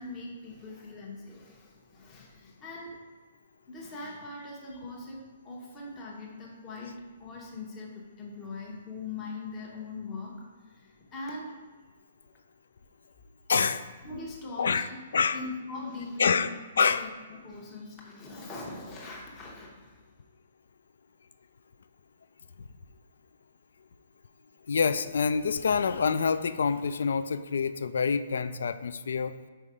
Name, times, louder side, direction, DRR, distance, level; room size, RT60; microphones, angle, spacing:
voice 1, 0.0-3.0 3.7-11.6 14.0-14.8 15.3-16.5 17.0-20.0, left 3 dB, 15° left, -3 dB, 0.8 m, -41 dB
voice 2, 13.5-13.8 14.6-14.9 15.1-15.4 16.2-16.5 16.8-17.1 24.7-29.3, left 5 dB, 80° left, 12 dB, 0.3 m, -26 dB
5.4 x 4.5 x 4.9 m, 1.4 s
hypercardioid pair, 170°, 0 cm